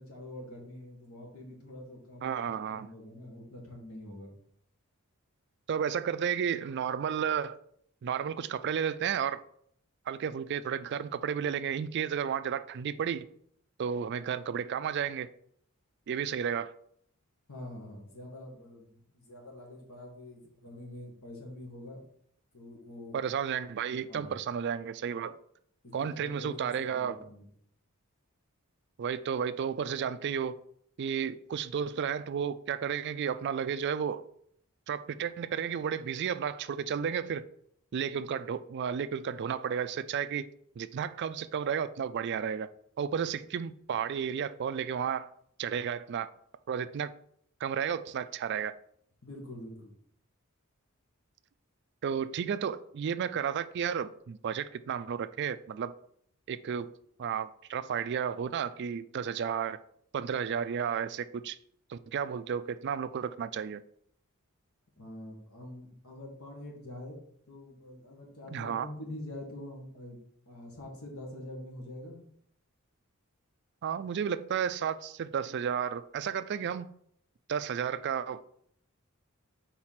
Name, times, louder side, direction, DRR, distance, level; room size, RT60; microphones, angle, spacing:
voice 1, 0.0-4.3 17.5-22.0 22.5-23.2 24.1-24.4 25.8-27.5 49.2-50.0 65.0-67.2 67.5-70.2 70.5-72.3, left 1 dB, 80° left, 1.9 m, -45 dB
voice 2, 2.2-2.9 5.7-7.6 8.0-9.4 10.1-13.3 13.8-15.3 16.1-16.7 23.1-25.4 25.9-27.2 29.0-30.6 31.0-34.2 34.9-37.5 37.9-40.5 40.8-42.7 43.0-45.3 45.6-46.3 46.7-47.1 47.6-48.7 52.0-55.9 56.5-56.9 57.2-59.8 60.1-61.6 61.9-63.8 68.5-68.9 73.8-76.9 77.5-78.4, right 7 dB, 50° right, 0.3 m, -32 dB
4.6 x 4.2 x 5.7 m
head